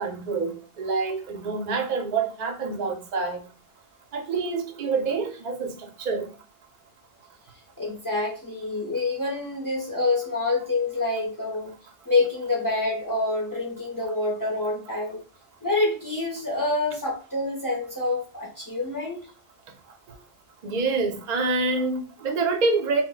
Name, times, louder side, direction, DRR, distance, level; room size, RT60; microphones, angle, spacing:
voice 1, 0.0-3.4 4.1-6.3 20.1-20.2 20.6-23.0, right 4 dB, 50° right, 0.5 m, -27 dB
voice 2, 7.8-11.8 12.1-15.2 15.6-19.3, left 2 dB, 30° left, 0.4 m, -27 dB
2.1 x 2.1 x 3.7 m
omnidirectional pair, 1.3 m